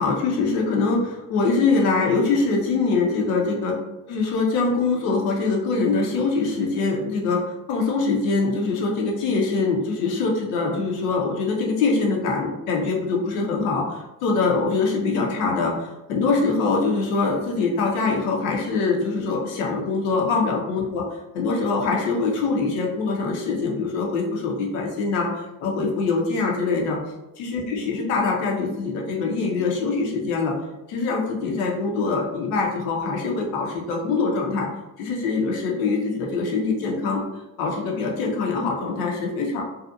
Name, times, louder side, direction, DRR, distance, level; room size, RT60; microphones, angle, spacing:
voice 1, 0.0-3.7 4.1-7.4 7.7-21.0 21.3-27.0 27.4-30.5 30.9-34.7 35.0-37.2 37.6-39.6, left 4 dB, 70° left, 0 dB, 0.8 m, -23 dB
2.7 x 2.4 x 2.4 m, 0.97 s
hypercardioid pair, 55°, 43 cm